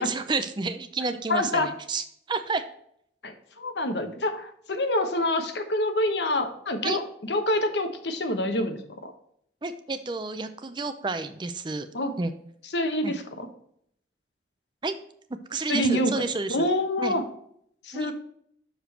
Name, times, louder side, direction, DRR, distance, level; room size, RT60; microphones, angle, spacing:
voice 1, 0.0-2.6 6.8-7.0 9.6-11.9 12.2-12.3 13.0-13.1 14.8-14.9 15.5-16.6 17.0-17.2 17.9-18.1, right 3 dB, 25° right, 9 dB, 0.5 m, -30 dB
voice 2, 1.3-1.7 3.2-9.1 11.9-12.1 12.7-13.5 15.7-17.2 17.8-18.1, left 1 dB, 80° left, 7 dB, 1.0 m, -27 dB
6.7 x 5.0 x 4.4 m, 0.69 s
head